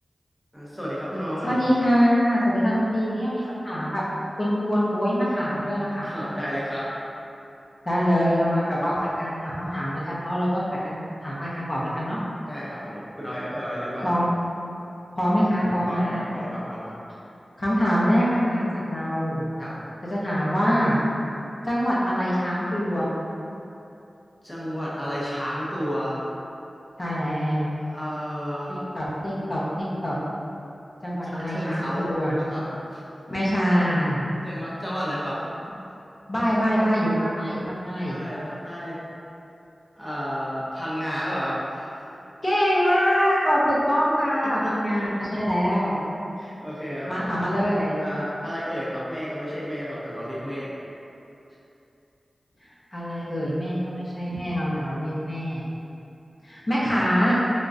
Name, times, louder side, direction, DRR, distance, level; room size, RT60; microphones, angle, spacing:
voice 1, 0.5-1.6 6.0-6.9 9.6-9.8 12.5-14.2 15.9-16.9 19.6-19.7 24.4-26.2 27.9-28.8 31.2-32.6 32.9-33.0 34.4-35.5 37.8-39.0 40.0-41.9 44.6-45.0 46.4-47.1 48.0-50.7, equal, 5° left, -9 dB, 0.7 m, -32 dB
voice 2, 1.4-4.0 4.4-6.1 7.8-12.2 14.0-14.3 15.1-16.2 17.6-19.5 20.1-21.1 21.6-23.1 27.0-27.7 28.9-30.2 31.0-32.4 33.3-34.2 36.3-38.2 42.4-46.0 47.1-48.0 52.9-55.6 56.4-57.3, equal, 35° left, -8 dB, 0.8 m, -24 dB
3.7 x 3.5 x 2.6 m, 2.8 s
wide cardioid pair, 90°, 0 cm